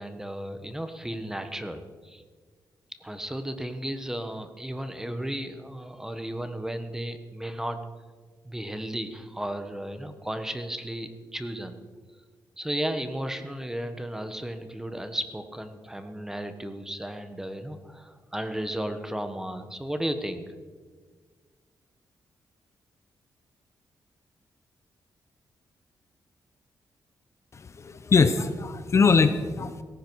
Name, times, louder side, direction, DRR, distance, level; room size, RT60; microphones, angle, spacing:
voice 1, 0.0-2.2 3.0-7.8 8.4-11.8 12.6-20.4, right 1 dB, 5° right, 8 dB, 1.2 m, -34 dB
voice 2, 27.5-29.8, left 4 dB, 40° left, 11 dB, 0.8 m, -22 dB
17.5 x 15.0 x 4.7 m, 1.5 s
wide cardioid pair, 125°, 8 cm